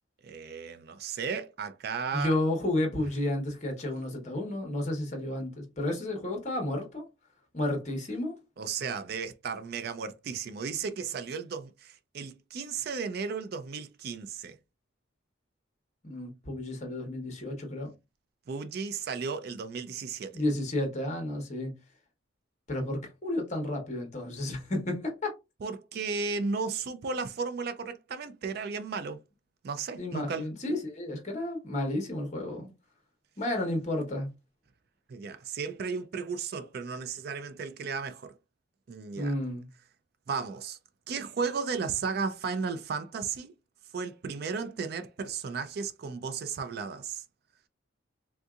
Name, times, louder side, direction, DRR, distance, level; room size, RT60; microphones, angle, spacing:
voice 1, 0.2-2.3 8.6-14.6 18.5-20.4 25.6-29.2 29.6-30.5 35.1-38.3 38.9-39.3 40.3-40.8 41.1-43.5 43.9-47.2, right 5 dB, 50° right, 0.3 m, -34 dB
voice 2, 2.1-7.0 7.5-8.4 16.0-17.9 20.3-21.7 22.7-25.3 30.0-32.7 33.4-34.3 39.2-39.7, left 1 dB, 35° left, 1.0 m, -32 dB
3.6 x 2.7 x 2.3 m
head